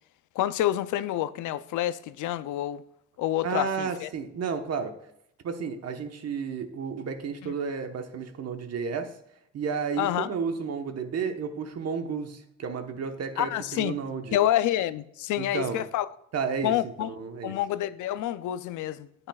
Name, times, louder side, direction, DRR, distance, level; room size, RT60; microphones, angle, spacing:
voice 1, 0.4-2.8 3.2-4.1 7.4-7.5 10.0-10.3 13.4-14.0 14.3-16.1 16.6-17.1 17.4-19.3, left 13 dB, 80° left, 0.5 m, -28 dB
voice 2, 3.4-4.9 5.4-9.1 9.5-14.4 15.4-15.8 16.3-17.6, right 6 dB, 55° right, 1.1 m, -32 dB
9.7 x 8.8 x 2.3 m
cardioid pair, 90°, 30 cm